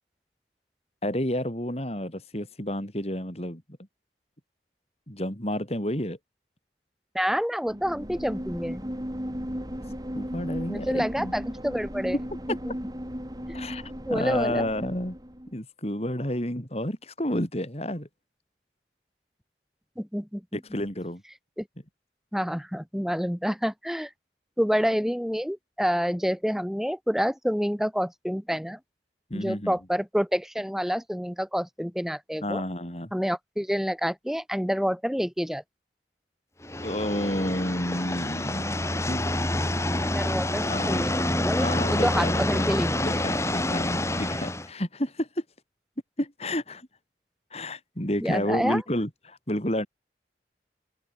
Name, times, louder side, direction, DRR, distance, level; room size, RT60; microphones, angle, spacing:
voice 1, 1.0-3.6 5.1-6.2 10.1-11.3 12.1-12.2 12.5-12.6 13.5-15.2 15.5-18.1 20.5-21.2 29.3-29.8 32.4-33.1 36.8-39.4 40.7-41.1 41.6-42.7 43.0-45.4 46.2-46.9 47.5-49.9, left 1 dB, 35° left, 4.5 m, -30 dB
voice 2, 7.1-8.8 10.7-12.2 12.7-12.8 14.1-14.6 20.0-20.4 21.6-21.7 22.3-24.1 24.6-28.8 29.3-32.6 33.1-35.6 40.0-42.9 48.2-48.8, equal, ahead, 2.7 m, -28 dB
sound 1, 7.7-15.5, equal, 20° right, 4.3 m, -36 dB
sound 2, 36.6-44.7, left 1 dB, 15° left, 2.8 m, -27 dB
open air
head